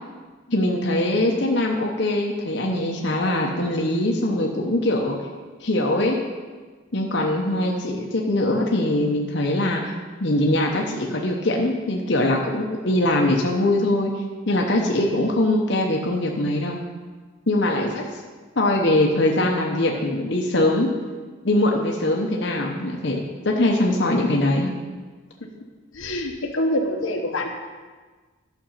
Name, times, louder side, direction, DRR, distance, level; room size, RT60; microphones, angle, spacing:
voice 1, 0.5-5.2 5.6-6.2 6.9-9.9 10.2-16.8 17.5-18.0 18.6-20.9 21.4-24.7, left 1 dB, 60° left, 0 dB, 1.0 m, -22 dB
voice 2, 25.9-27.5, left 1 dB, 85° left, 2 dB, 1.2 m, -26 dB
11.5 x 6.4 x 5.6 m, 1.4 s
head